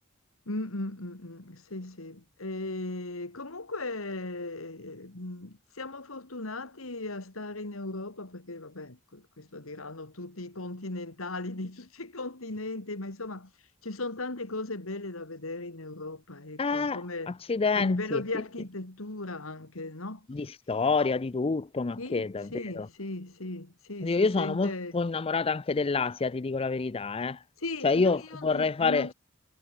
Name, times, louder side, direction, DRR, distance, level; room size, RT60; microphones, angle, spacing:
voice 1, 0.5-13.5 13.8-17.3 17.7-20.3 22.0-25.0 27.6-29.1, left 2 dB, 85° left, 2.7 m, -37 dB
voice 2, 16.6-17.0 17.5-18.2 20.3-22.9 24.0-27.4 27.8-29.1, left 4 dB, 30° left, 0.5 m, -27 dB
head